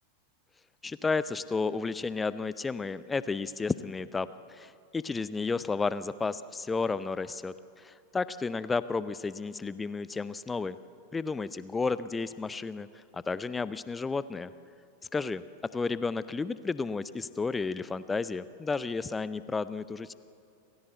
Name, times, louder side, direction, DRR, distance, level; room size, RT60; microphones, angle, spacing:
voice 1, 0.8-10.8 11.1-14.5 15.1-15.4 15.7-20.1, left 4 dB, 15° left, 16 dB, 0.6 m, -32 dB
29.0 x 15.5 x 8.0 m, 2.5 s
figure-of-eight pair, 90°, 0 cm